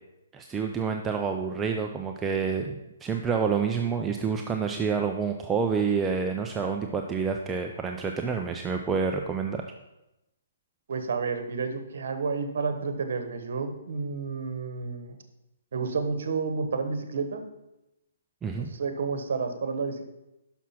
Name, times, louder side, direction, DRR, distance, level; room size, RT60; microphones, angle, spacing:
voice 1, 0.3-9.6 18.4-18.7, right 5 dB, 10° right, 3 dB, 0.4 m, -28 dB
voice 2, 10.9-15.2 15.7-17.4 18.6-20.1, right 4 dB, 60° right, 7 dB, 1.2 m, -30 dB
6.1 x 5.9 x 5.7 m, 0.93 s
hypercardioid pair, 160°, 0 cm